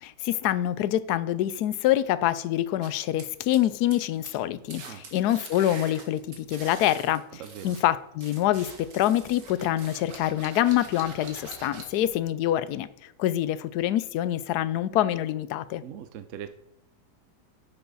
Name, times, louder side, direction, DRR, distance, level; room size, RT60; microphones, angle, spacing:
voice 1, 0.0-15.8, left 12 dB, 75° left, 1.0 m, -26 dB
sound 1, 2.8-4.0 4.3-4.4 4.7-7.8 8.2-12.1, right 4 dB, 85° right, 2.1 m, -45 dB
voice 2, 7.4-7.7 15.8-16.5, right 10 dB, 70° right, 0.7 m, -40 dB
9.9 x 7.1 x 4.0 m
omnidirectional pair, 1.8 m